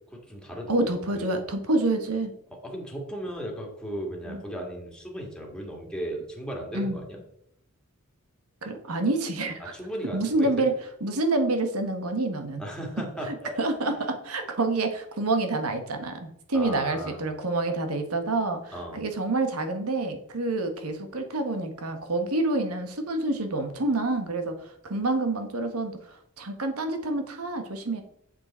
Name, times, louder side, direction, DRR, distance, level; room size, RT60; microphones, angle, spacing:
voice 1, 0.1-1.3 2.6-7.2 9.6-10.7 12.6-14.1 16.5-17.2 18.7-19.0, right 1 dB, 5° left, -1 dB, 2.0 m, -36 dB
voice 2, 0.7-2.3 4.3-4.4 6.7-7.0 8.6-9.7 10.1-10.7 11.0-12.6 13.3-28.0, right 2 dB, 85° right, 6 dB, 1.3 m, -28 dB
7.7 x 6.9 x 4.3 m, 0.75 s
head